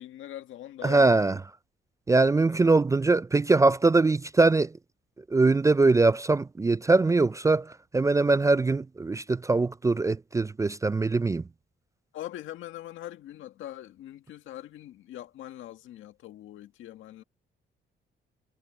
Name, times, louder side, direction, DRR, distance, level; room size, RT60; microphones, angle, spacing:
voice 1, 0.0-1.2 12.1-17.2, left 13 dB, 85° left, 1.8 m, -42 dB
voice 2, 0.8-1.4 2.1-4.7 5.3-11.4, right 3 dB, 15° right, 0.3 m, -22 dB
cardioid pair, 90°, 20 cm